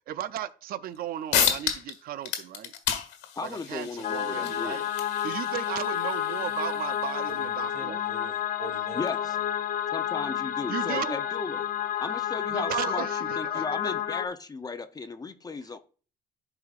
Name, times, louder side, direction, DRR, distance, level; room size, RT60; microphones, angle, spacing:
voice 1, 0.1-2.7 3.4-4.8 5.2-8.1 10.7-11.2 12.5-13.6, right 11 dB, 60° right, 0.5 m, -35 dB
sound 1, 0.9-1.0 1.3-2.0 2.2-7.4, left 9 dB, 90° left, 1.6 m, -32 dB
voice 2, 3.3-4.9 8.9-9.4 9.9-11.7 12.0-15.8, left 4 dB, 20° left, 0.7 m, -36 dB
sound 2, 4.0-14.3, left 10 dB, 55° left, 0.7 m, -30 dB
voice 3, 7.3-9.4, right 4 dB, 45° right, 1.8 m, -44 dB
11.5 x 4.9 x 2.5 m
cardioid pair, 110°, 17 cm